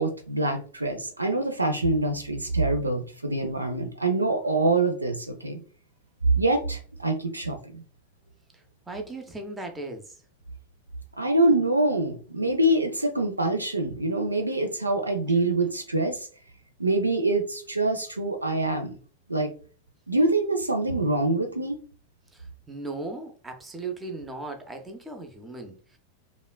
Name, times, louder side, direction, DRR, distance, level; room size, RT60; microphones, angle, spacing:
voice 1, 0.0-5.6 6.4-7.8 11.2-16.3 16.8-19.0 19.3-19.5 20.1-21.8, right 2 dB, 80° right, 5 dB, 0.6 m, -25 dB
voice 2, 8.9-10.2 22.3-26.0, right 3 dB, 10° right, 5 dB, 0.7 m, -37 dB
5.1 x 2.4 x 2.2 m, 0.40 s
figure-of-eight pair, 90°, 0 cm